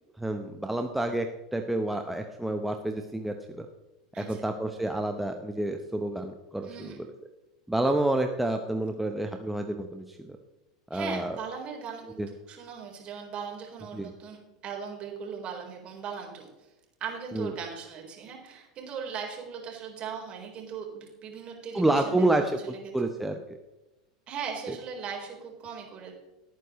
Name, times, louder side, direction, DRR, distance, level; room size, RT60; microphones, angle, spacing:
voice 1, 0.2-3.7 4.2-7.1 7.7-10.3 10.9-11.4 12.2-12.3 13.9-14.1 17.3-17.5 21.7-23.6 24.7-24.8, right 1 dB, 5° right, 5 dB, 1.0 m, -29 dB
voice 2, 4.1-4.5 6.6-7.0 10.9-16.5 17.0-22.9 24.3-26.1, right 6 dB, 40° right, 0 dB, 4.0 m, -39 dB
18.0 x 9.2 x 3.2 m, 1.0 s
hypercardioid pair, 85°, 3 cm